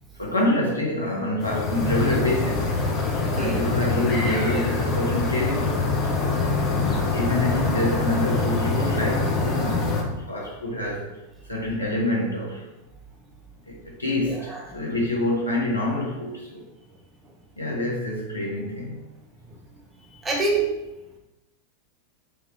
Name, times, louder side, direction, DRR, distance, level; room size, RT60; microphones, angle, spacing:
voice 1, 0.2-2.7 3.3-6.4 7.1-11.1 11.5-12.7 13.7-16.6 17.6-19.0, left 1 dB, 80° left, -2 dB, 0.9 m, -26 dB
sound 1, 1.4-10.0, left 3 dB, 30° left, 0.7 m, -24 dB
voice 2, 3.2-3.6 6.7-7.2 14.3-14.6 20.2-20.8, right 3 dB, 15° right, -1 dB, 0.9 m, -27 dB
4.4 x 2.9 x 3.3 m, 0.97 s
figure-of-eight pair, 90°, 0 cm